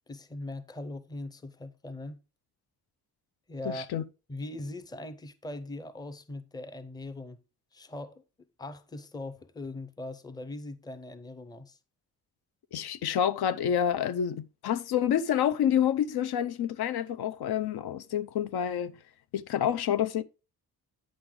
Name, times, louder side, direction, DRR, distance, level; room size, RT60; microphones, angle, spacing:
voice 1, 0.1-2.2 3.5-3.9 4.3-7.4 7.7-8.2 8.6-11.8, left 2 dB, 10° left, 0.6 m, -40 dB
voice 2, 3.7-4.0 12.7-18.9 19.3-20.2, left 9 dB, 85° left, 0.7 m, -28 dB
9.1 x 6.4 x 3.7 m
wide cardioid pair, 165°, 37 cm